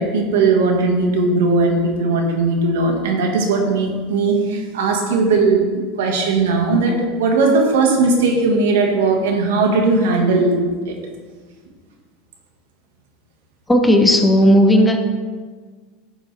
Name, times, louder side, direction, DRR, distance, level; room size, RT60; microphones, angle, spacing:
voice 1, 0.0-10.6 10.9-11.0, right 3 dB, 90° right, 2 dB, 1.7 m, -18 dB
voice 2, 13.7-15.0, equal, 5° left, 3 dB, 0.9 m, -13 dB
11.0 x 7.2 x 3.4 m, 1.5 s
supercardioid pair, 140°, 0 cm